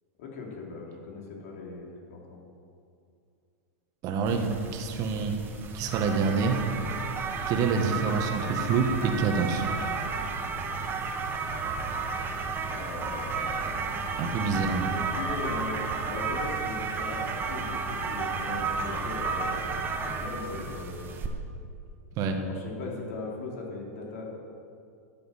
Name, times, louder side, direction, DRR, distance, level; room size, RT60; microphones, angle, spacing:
voice 1, 0.2-2.4 12.7-13.7 14.8-15.8 16.1-19.6 20.0-21.1 22.4-24.4, left 3 dB, 65° left, -2 dB, 3.8 m, -39 dB
voice 2, 4.0-5.4 5.7-6.6 7.5-9.6 14.1-14.9 22.2-22.4, right 5 dB, 45° right, 4 dB, 1.7 m, -27 dB
sound 1, 4.3-21.3, right 4 dB, 25° right, 1.6 m, -32 dB
14.0 x 7.8 x 7.5 m, 2.4 s
hypercardioid pair, 115°, 8 cm